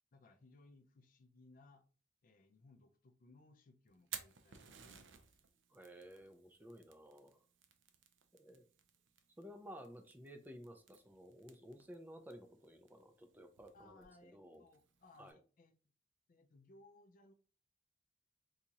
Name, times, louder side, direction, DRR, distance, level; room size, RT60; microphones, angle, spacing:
voice 1, 0.1-1.9 2.2-5.4 13.7-15.7 16.3-17.3, left 2 dB, 45° left, 0.4 m, -64 dB
Fire, 3.9-15.3, right 8 dB, 80° right, 0.5 m, -57 dB
voice 2, 5.7-7.5 8.3-8.6 9.4-14.6 15.2-15.4, equal, 10° right, 0.5 m, -55 dB
4.0 x 2.4 x 2.8 m
head